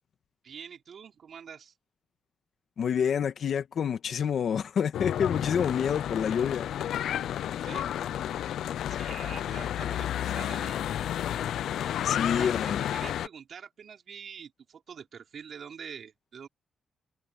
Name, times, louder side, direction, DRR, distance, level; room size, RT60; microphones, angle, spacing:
voice 1, 0.4-1.7 7.6-7.9 8.9-10.9 12.3-16.5, right 7 dB, 55° right, 4.1 m, -45 dB
voice 2, 2.8-6.7 12.0-12.8, left 7 dB, 55° left, 1.9 m, -28 dB
Church bell / Traffic noise roadway noise, 4.9-13.3, left 11 dB, 85° left, 0.4 m, -31 dB
wide cardioid pair, 150°, 0 cm